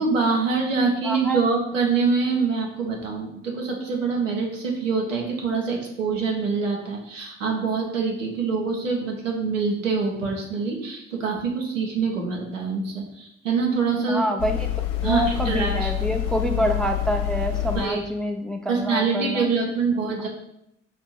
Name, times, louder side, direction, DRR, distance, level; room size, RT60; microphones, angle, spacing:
voice 1, 0.0-14.2 15.0-15.9 17.7-18.0 18.7-20.3, right 4 dB, 85° right, 0 dB, 0.7 m, -25 dB
voice 2, 1.0-1.4 14.1-14.7 15.0-19.5, equal, ahead, 4 dB, 0.3 m, -26 dB
sound 1, 14.4-18.1, left 12 dB, 75° left, 0.5 m, -27 dB
4.3 x 2.6 x 4.2 m, 0.80 s
figure-of-eight pair, 45°, 38 cm